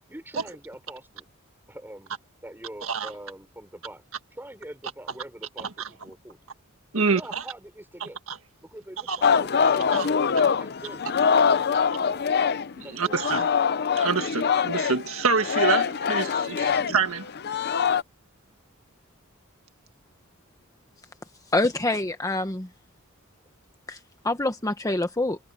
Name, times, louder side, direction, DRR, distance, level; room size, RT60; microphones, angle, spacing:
voice 1, 0.1-1.3 1.7-2.1 2.4-4.0 4.4-6.4 6.9-8.2 8.6-10.2 10.6-11.1 11.4-12.2 12.8-13.4 16.5-16.9, right 1 dB, 10° right, 5.4 m, -44 dB
voice 2, 5.6-5.9 6.9-7.4 8.0-8.4 9.1-9.2 9.9-10.1 12.8-13.5 14.0-17.3, right 5 dB, 70° right, 1.7 m, -27 dB
Singing, 9.2-12.8 13.1-18.0, left 6 dB, 50° left, 0.6 m, -24 dB
voice 3, 21.5-22.7 23.9-24.0 24.2-25.4, left 2 dB, 15° left, 1.1 m, -25 dB
head